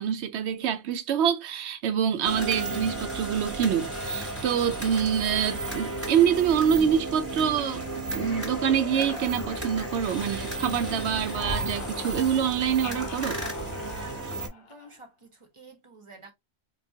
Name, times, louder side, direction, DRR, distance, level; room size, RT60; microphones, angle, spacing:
voice 1, 0.0-7.8 8.1-13.4, right 8 dB, 85° right, 0.9 m, -26 dB
sound 1, 2.2-14.5, right 2 dB, 15° right, 1.1 m, -34 dB
sound 2, 7.3-10.8 11.0-15.1, left 4 dB, 65° left, 0.9 m, -43 dB
voice 2, 14.0-16.3, right 2 dB, 30° right, 0.8 m, -50 dB
3.8 x 2.3 x 2.6 m
omnidirectional pair, 1.1 m